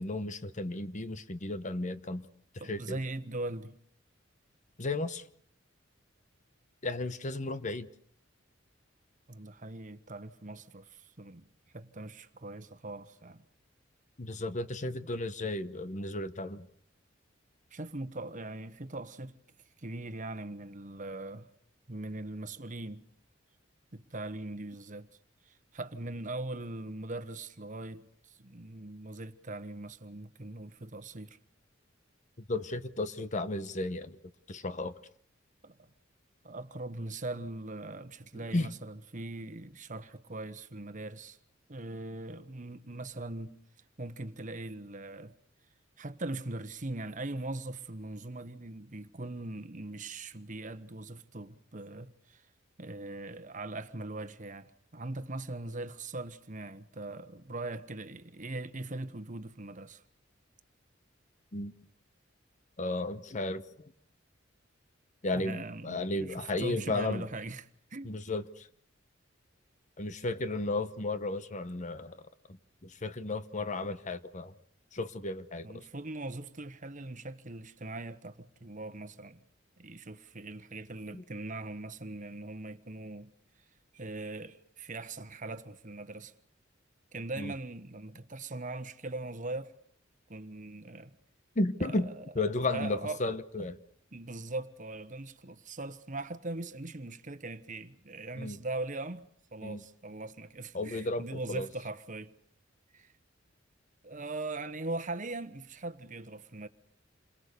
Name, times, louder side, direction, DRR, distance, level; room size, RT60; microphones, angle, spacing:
voice 1, 0.0-2.3 2.6-3.0 4.8-5.2 6.8-7.9 14.2-16.7 32.4-34.2 34.5-34.9 38.5-38.7 61.5-61.7 62.8-63.9 65.2-67.3 68.0-68.7 70.0-72.2 72.5-74.5 74.9-75.8 81.1-81.2 87.4-87.5 91.5-93.8 98.4-98.6 99.6-99.8 100.7-101.7, left 2 dB, 40° left, 1.1 m, -34 dB
voice 2, 2.6-3.8 7.4-7.5 9.3-11.5 11.7-13.4 17.7-19.4 19.8-21.5 21.9-23.0 23.9-25.1 25.5-31.4 35.6-35.9 36.4-41.4 41.7-43.5 44.0-45.3 46.0-52.4 52.8-60.0 65.3-68.1 75.6-79.4 79.8-83.3 83.9-86.3 87.1-89.7 90.3-91.1 91.8-93.2 93.6-93.7 94.1-102.3 102.9-103.1 104.0-106.7, right 2 dB, 40° right, 1.2 m, -41 dB
28.5 x 22.5 x 6.9 m
head